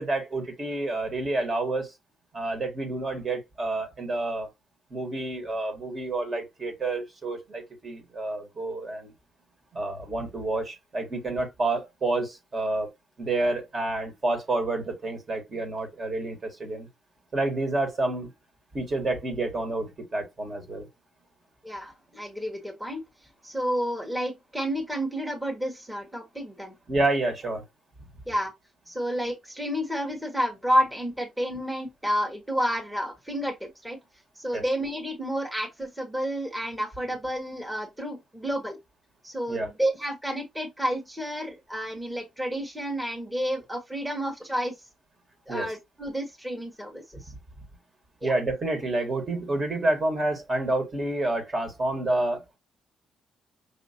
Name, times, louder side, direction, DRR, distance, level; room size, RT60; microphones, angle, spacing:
voice 1, 0.0-1.9 2.3-4.5 4.9-9.1 9.7-12.9 13.2-16.9 17.3-18.3 18.7-20.9 26.9-27.6 34.5-34.6 39.5-39.7 45.5-45.7 48.2-52.6, right 2 dB, 40° right, 1.7 m, -29 dB
voice 2, 21.6-23.0 23.4-26.7 28.3-28.5 28.9-34.0 34.4-38.8 39.2-44.7 45.5-47.3 48.2-48.3, equal, 10° right, 1.3 m, -30 dB
5.5 x 2.8 x 2.8 m
cardioid pair, 90°, 0 cm